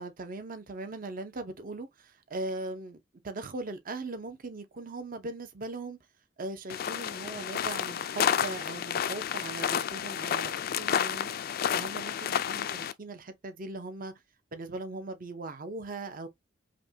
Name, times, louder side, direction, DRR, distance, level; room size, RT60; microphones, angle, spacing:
voice 1, 0.0-6.0 6.4-11.3 11.7-14.1 14.5-16.3, right 2 dB, 45° right, 0.7 m, -39 dB
sound 1, 6.7-12.9, left 8 dB, 50° left, 0.3 m, -30 dB
5.1 x 2.2 x 2.7 m
head